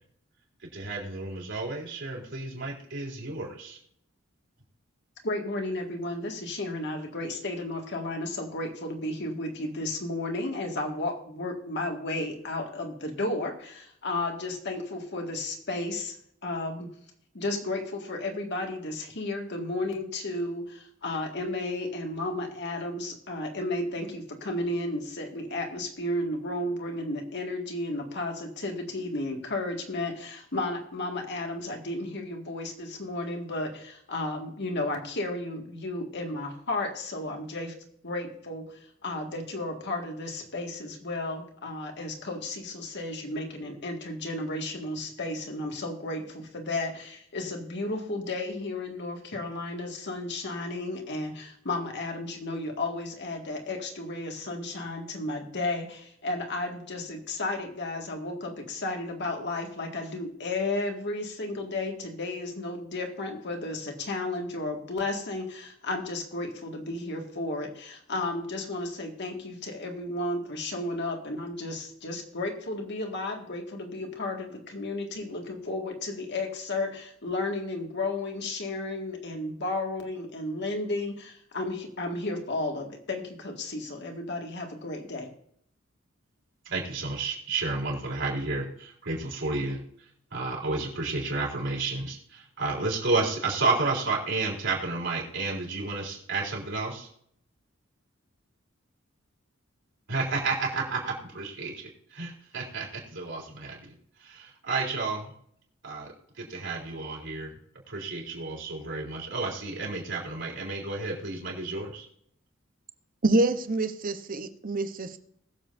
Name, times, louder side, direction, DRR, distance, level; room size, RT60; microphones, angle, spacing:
voice 1, 0.7-3.8 86.7-89.8 90.3-97.1 100.1-103.9 104.2-105.3 105.8-107.5 107.9-112.1, right 3 dB, 65° right, -2 dB, 3.7 m, -31 dB
voice 2, 5.2-16.2 16.4-16.9 17.3-37.7 38.0-85.3, left 2 dB, 60° left, 2 dB, 2.0 m, -33 dB
voice 3, 113.2-115.2, right 2 dB, 45° right, 9 dB, 0.9 m, -26 dB
21.0 x 7.4 x 2.7 m, 0.68 s
head